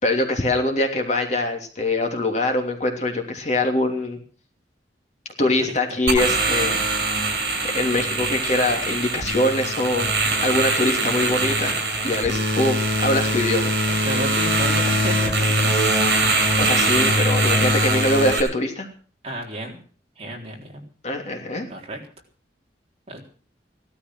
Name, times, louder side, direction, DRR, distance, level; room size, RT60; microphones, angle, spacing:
voice 1, 0.0-4.2 5.4-6.8 7.6-10.1 10.4-11.8 12.0-13.7 16.6-18.9 21.0-21.7, left 2 dB, 40° left, 3 dB, 3.2 m, -23 dB
voice 2, 5.4-6.0 13.9-15.8 19.2-19.8 20.2-20.8 21.7-22.0 23.1-23.3, right 1 dB, 35° right, 0 dB, 3.9 m, -32 dB
sound 1, 6.1-18.4, right 2 dB, 60° right, 7.0 m, -22 dB
17.0 x 13.0 x 6.2 m, 0.41 s
head